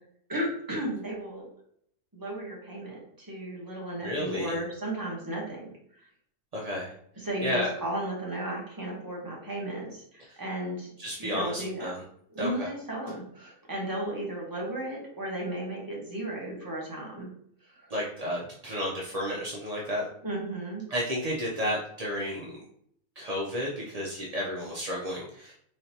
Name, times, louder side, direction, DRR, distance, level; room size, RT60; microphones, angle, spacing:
voice 1, 0.3-1.5 2.1-5.7 6.0-6.1 7.2-10.9 11.2-11.9 12.3-17.3 17.7-17.9 20.2-20.8, right 1 dB, 15° right, -3 dB, 0.9 m, -34 dB
voice 2, 4.0-4.6 6.5-6.9 7.4-7.7 11.0-12.0 12.4-12.7 17.9-20.0 20.9-22.6 23.2-25.5, equal, 50° right, -4 dB, 0.4 m, -32 dB
3.9 x 3.2 x 2.8 m, 0.67 s
omnidirectional pair, 1.6 m